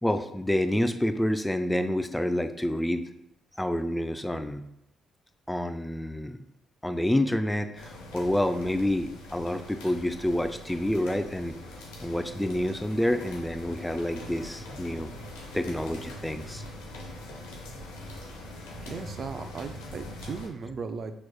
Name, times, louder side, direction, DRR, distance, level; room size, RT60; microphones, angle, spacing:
voice 1, 0.0-3.0 3.6-4.6 5.5-6.4 6.8-11.6 12.0-15.1 15.5-16.6 19.4-19.5, left 1 dB, 10° left, 9 dB, 0.4 m, -28 dB
sound 1, 7.7-20.5, left 1 dB, 85° left, 0.8 m, -43 dB
voice 2, 18.8-21.1, right 5 dB, 55° right, 9 dB, 0.4 m, -37 dB
6.0 x 3.1 x 2.3 m, 0.83 s
hypercardioid pair, 55°, 0 cm